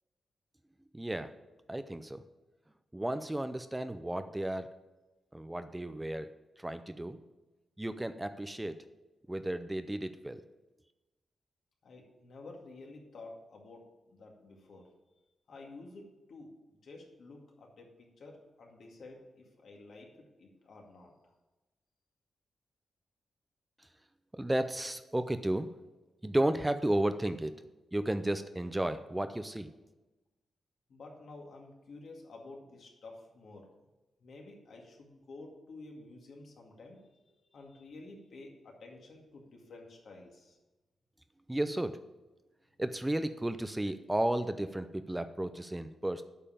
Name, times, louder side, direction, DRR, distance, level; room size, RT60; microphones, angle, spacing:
voice 1, 0.9-1.3 1.7-2.2 2.9-4.7 5.3-6.3 6.6-7.2 7.8-8.8 9.3-10.4 24.3-25.7 26.2-27.5 27.9-29.7 41.5-42.0 42.8-46.2, right 1 dB, 10° right, 10 dB, 0.4 m, -33 dB
voice 2, 11.8-14.9 15.5-16.5 16.8-20.1 20.4-21.3 30.9-33.7 34.2-37.0 37.5-40.6, left 2 dB, 65° left, 0 dB, 2.1 m, -51 dB
8.5 x 5.5 x 6.9 m, 1.1 s
wide cardioid pair, 115°, 0 cm